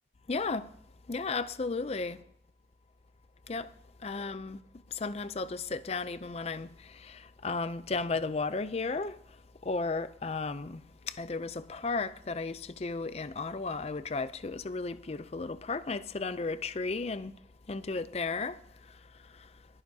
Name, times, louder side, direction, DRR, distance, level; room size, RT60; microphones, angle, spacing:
voice 1, 0.3-0.7 1.1-2.2 3.5-3.7 4.0-4.6 4.9-9.2 9.6-10.8 11.1-17.3 17.7-18.6, left 3 dB, 35° left, 0.5 m, -34 dB
21.0 x 9.7 x 2.8 m
head